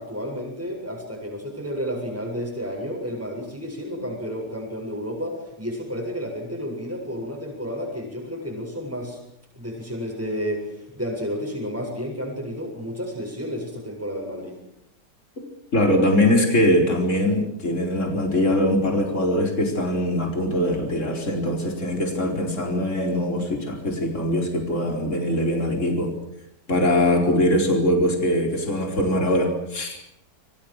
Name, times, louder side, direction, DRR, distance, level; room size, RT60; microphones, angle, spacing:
voice 1, 0.0-9.2 9.5-14.6, equal, 10° right, -1 dB, 7.8 m, -31 dB
voice 2, 15.7-26.1 26.7-30.0, left 1 dB, 45° left, 2 dB, 5.0 m, -22 dB
28.5 x 25.0 x 6.7 m, 0.76 s
omnidirectional pair, 1.8 m